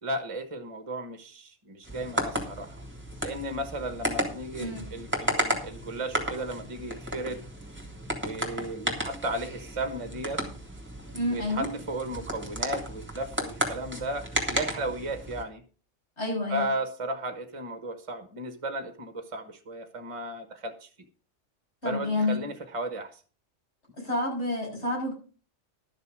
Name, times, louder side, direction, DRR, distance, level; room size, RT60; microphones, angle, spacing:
voice 1, 0.0-2.8 3.2-7.4 8.2-10.4 11.3-15.6 16.5-20.9 21.8-23.2, right 1 dB, 25° right, 1.1 m, -35 dB
sound 1, 1.8-15.4, right 1 dB, 10° right, 2.6 m, -34 dB
voice 2, 11.1-11.7 16.2-16.7 21.8-22.4 24.0-25.1, left 2 dB, 60° left, 6.2 m, -29 dB
12.0 x 6.7 x 6.1 m
omnidirectional pair, 1.3 m